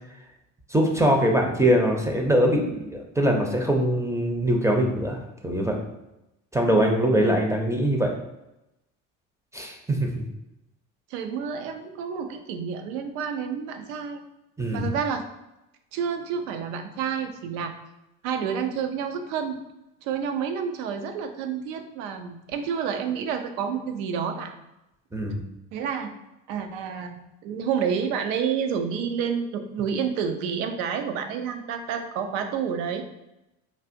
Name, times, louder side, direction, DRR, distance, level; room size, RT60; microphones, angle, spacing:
voice 1, 0.7-5.2 5.4-5.8 6.5-8.1 9.5-10.2 14.6-14.9 25.1-25.4, right 1 dB, 10° right, 1 dB, 0.5 m, -22 dB
voice 2, 11.1-14.2 14.7-15.3 15.9-17.7 18.2-19.6 20.0-24.5 25.7-26.1 26.5-33.0, right 7 dB, 85° right, 6 dB, 0.5 m, -29 dB
3.3 x 2.4 x 2.5 m, 0.91 s
hypercardioid pair, 70°, 40 cm